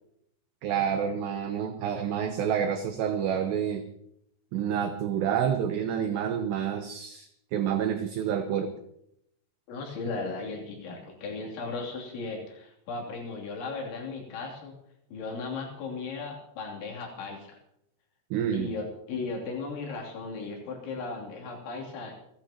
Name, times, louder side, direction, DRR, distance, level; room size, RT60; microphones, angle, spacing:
voice 1, 0.6-3.8 4.5-8.7 18.3-18.7, right 8 dB, 80° right, 7 dB, 2.5 m, -28 dB
voice 2, 9.7-14.8 15.1-17.6 18.5-22.1, left 3 dB, 65° left, -2 dB, 5.2 m, -36 dB
29.5 x 12.0 x 2.9 m, 0.77 s
omnidirectional pair, 5.8 m